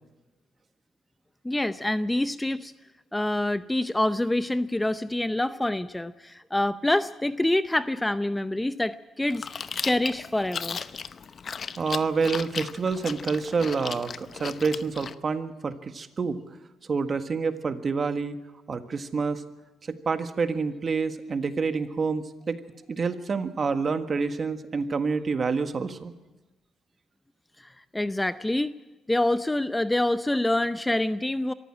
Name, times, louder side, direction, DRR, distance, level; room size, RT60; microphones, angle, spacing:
voice 1, 1.4-2.7 3.1-9.5 9.8-10.8 27.9-28.7 29.1-31.5, left 1 dB, 10° left, 12 dB, 0.6 m, -26 dB
Chewing mastication, 9.3-15.1, left 6 dB, 50° left, 0.8 m, -36 dB
voice 2, 11.8-16.4 16.9-18.4 18.7-19.4 19.9-22.6 22.9-26.1, right 4 dB, 40° right, 8 dB, 1.6 m, -28 dB
23.5 x 14.5 x 8.8 m, 1.1 s
cardioid pair, 90°, 0 cm